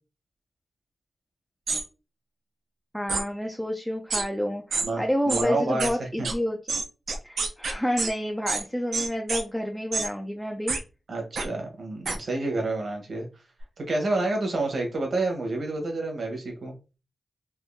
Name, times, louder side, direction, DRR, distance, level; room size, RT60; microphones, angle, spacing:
sound 1, 1.7-1.8 3.1-3.2 4.1-4.2 4.7-4.9 5.3-5.4 5.8-5.9 6.2-6.3 6.7-8.1 8.5-8.6 8.9-9.4 9.9-10.1 10.7-10.8 11.4-11.5 12.0-12.2, right 4 dB, 80° right, 0.6 m, -27 dB
voice 1, 2.9-6.6 7.2-10.8, equal, ahead, 2 dB, 0.4 m, -29 dB
voice 2, 4.8-6.3 11.1-13.2 13.8-16.7, right 2 dB, 55° right, 2 dB, 1.1 m, -29 dB
3.5 x 2.6 x 2.6 m, 0.30 s
wide cardioid pair, 150°, 0 cm